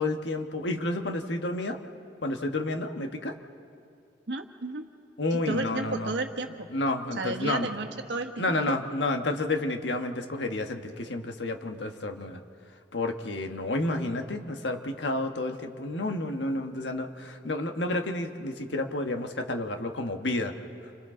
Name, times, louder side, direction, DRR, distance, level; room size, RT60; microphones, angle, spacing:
voice 1, 0.0-1.8 2.2-3.3 5.2-6.1 6.7-7.7 8.4-12.4 12.9-20.5, left 2 dB, 80° left, 5 dB, 1.3 m, -30 dB
voice 2, 4.3-4.9 5.3-6.7 7.1-8.3, right 3 dB, 80° right, 4 dB, 1.4 m, -32 dB
29.5 x 26.0 x 3.8 m, 2.4 s
head